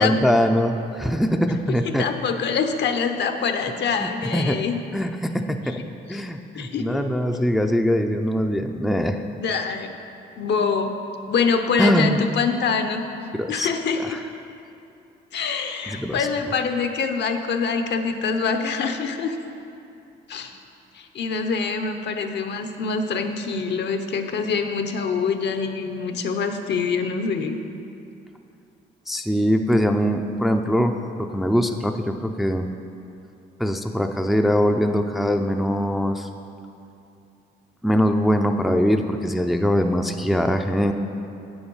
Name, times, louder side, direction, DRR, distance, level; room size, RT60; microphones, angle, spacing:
voice 1, 0.0-2.0 4.0-4.6 4.9-5.8 6.1-9.2 11.8-12.2 13.3-13.7 14.0-14.2 15.9-16.2 29.1-32.7 33.6-36.3 37.8-40.9, equal, ahead, 5 dB, 0.4 m, -22 dB
voice 2, 1.8-4.8 6.1-6.2 6.5-7.0 9.4-9.9 10.4-10.9 11.3-13.0 13.5-14.2 15.3-19.4 20.3-20.6 20.9-27.8, left 5 dB, 60° left, 6 dB, 0.8 m, -25 dB
8.3 x 7.1 x 5.5 m, 2.7 s
cardioid pair, 90°, 20 cm